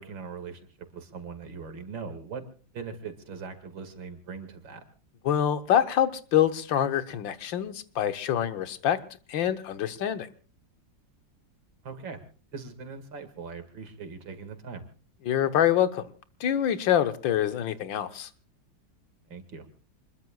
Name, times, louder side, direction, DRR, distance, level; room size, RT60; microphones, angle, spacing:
voice 1, 0.0-2.4 2.7-4.8 11.8-12.2 12.5-14.8 19.3-19.7, right 5 dB, 85° right, 8 dB, 2.8 m, -40 dB
voice 2, 5.3-9.0 9.3-10.3 15.3-16.1 16.4-18.3, left 10 dB, 85° left, 10 dB, 1.8 m, -25 dB
27.0 x 21.0 x 2.3 m, 0.38 s
omnidirectional pair, 2.0 m